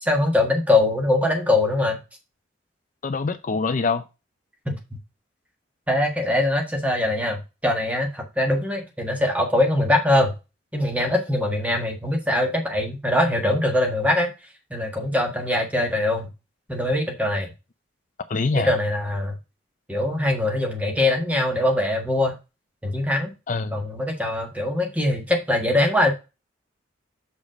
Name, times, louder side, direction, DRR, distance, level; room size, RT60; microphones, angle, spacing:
voice 1, 0.0-2.0 4.6-4.8 5.9-10.3 10.7-14.3 14.7-16.3 16.7-17.5 18.5-19.3 19.9-22.3 22.8-23.3 23.7-26.1, left 1 dB, 10° right, 2 dB, 1.5 m, -22 dB
voice 2, 3.0-4.0 18.3-18.7 23.5-23.8, left 4 dB, 40° left, 11 dB, 0.5 m, -24 dB
6.5 x 5.2 x 5.0 m, 0.28 s
head